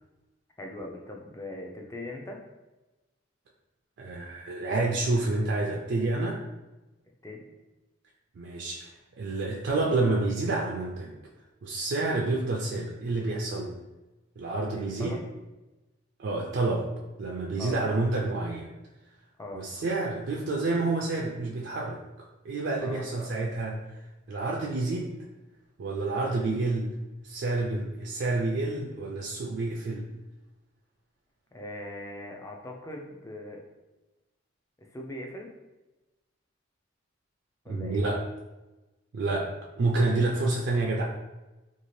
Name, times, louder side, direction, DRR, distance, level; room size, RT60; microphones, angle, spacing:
voice 1, 0.6-2.4 7.2-7.5 14.7-15.2 17.6-17.8 19.4-19.7 22.8-23.1 31.5-33.6 34.8-35.5 37.6-38.0, left 1 dB, 15° left, 0 dB, 0.4 m, -40 dB
voice 2, 4.0-6.4 8.4-8.9 9.2-11.1 11.6-13.8 14.4-15.2 16.2-16.9 17.2-18.7 19.5-24.0 24.3-25.1 25.8-26.9 27.2-30.1 37.7-38.2 39.1-39.5 39.8-41.0, right 2 dB, 60° right, -2 dB, 0.3 m, -29 dB
2.7 x 2.4 x 3.1 m, 1.1 s
head